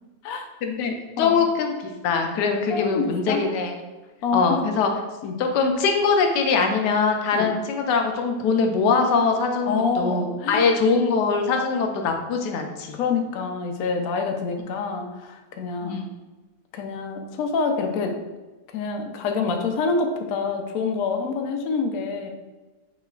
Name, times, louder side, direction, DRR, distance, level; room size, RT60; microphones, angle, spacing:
voice 1, 0.6-1.7 2.0-3.8 4.3-4.9 5.4-13.0 15.8-16.0, left 4 dB, 85° left, 4 dB, 1.2 m, -22 dB
voice 2, 2.7-3.4 4.2-4.6 5.2-5.4 7.3-7.5 9.7-10.7 12.9-16.0 16.7-18.1 18.7-22.3, left 4 dB, 70° left, 4 dB, 0.9 m, -26 dB
6.0 x 3.1 x 2.3 m, 1.2 s
omnidirectional pair, 1.8 m